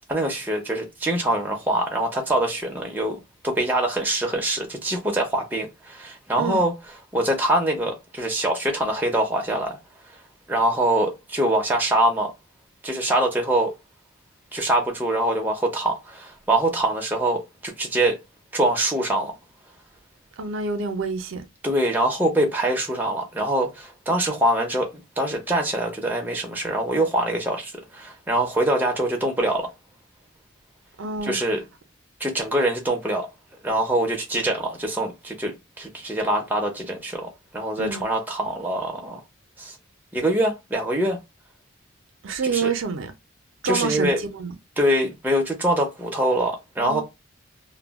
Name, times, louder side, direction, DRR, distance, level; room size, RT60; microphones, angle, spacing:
voice 1, 0.1-6.7 7.1-9.8 10.1-10.2 10.5-12.3 12.8-13.7 14.5-18.2 18.5-19.4 21.6-29.7 31.2-31.6 32.2-33.3 33.6-39.2 39.6-39.8 40.1-41.2 42.4-42.7 43.6-44.2 44.8-47.0, right 1 dB, 10° right, 0.5 m, -24 dB
voice 2, 20.4-21.5 31.0-31.4 37.8-38.1 42.2-43.1 43.6-44.5 46.8-47.0, right 5 dB, 70° right, 0.5 m, -27 dB
2.2 x 2.0 x 3.4 m
head